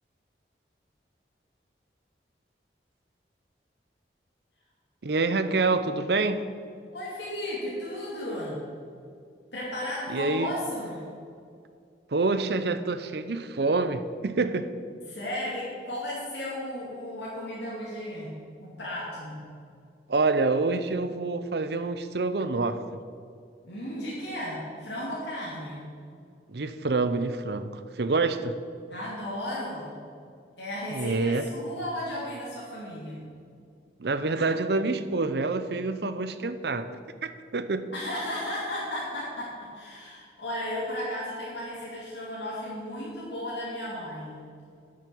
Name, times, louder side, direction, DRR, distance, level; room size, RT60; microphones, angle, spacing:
voice 1, 5.0-6.4 10.1-10.5 12.1-14.7 20.1-22.8 26.5-28.5 30.9-31.5 34.0-36.9 37.2-37.9, right 3 dB, 70° right, 11 dB, 0.7 m, -27 dB
voice 2, 6.9-8.7 9.5-11.0 15.1-19.4 23.6-25.9 28.9-29.9 30.6-33.3 37.9-44.5, left 1 dB, 85° left, -7 dB, 2.7 m, -34 dB
9.7 x 7.7 x 7.0 m, 2.3 s
head